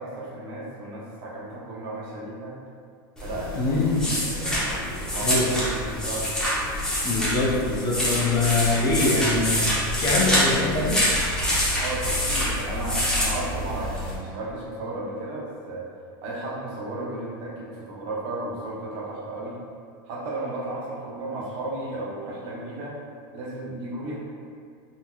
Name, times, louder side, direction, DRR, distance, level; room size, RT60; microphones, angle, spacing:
voice 1, 0.0-2.6 3.2-6.4 11.8-15.9 16.2-19.6 20.1-23.0 23.3-24.2, right 2 dB, 55° right, -4 dB, 0.8 m, -34 dB
sound 1, 3.2-14.1, left 1 dB, 5° left, 0.8 m, -26 dB
voice 2, 3.5-4.1 5.2-5.5 7.0-11.0, left 2 dB, 30° left, -4 dB, 0.6 m, -24 dB
3.8 x 2.8 x 2.2 m, 2.3 s
supercardioid pair, 130°, 12 cm